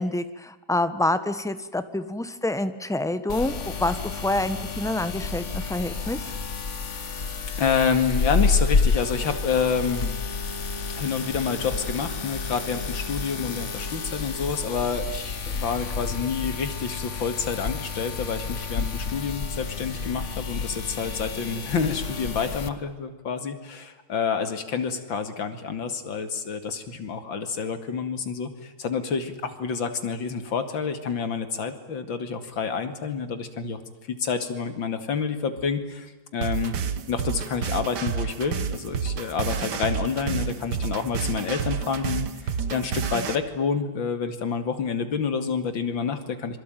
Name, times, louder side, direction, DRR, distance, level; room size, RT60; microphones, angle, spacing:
voice 1, 0.0-6.3, left 2 dB, ahead, 11 dB, 1.0 m, -27 dB
sound 1, 3.3-22.7, left 4 dB, 40° left, 1.6 m, -30 dB
voice 2, 7.0-7.3 7.6-10.1 11.0-33.8 34.1-36.8 37.1-46.6, left 6 dB, 75° left, 9 dB, 2.9 m, -28 dB
sound 2, 36.4-43.4, right 6 dB, 60° right, 1.9 m, -29 dB
26.0 x 23.5 x 9.2 m, 1.1 s
omnidirectional pair, 2.1 m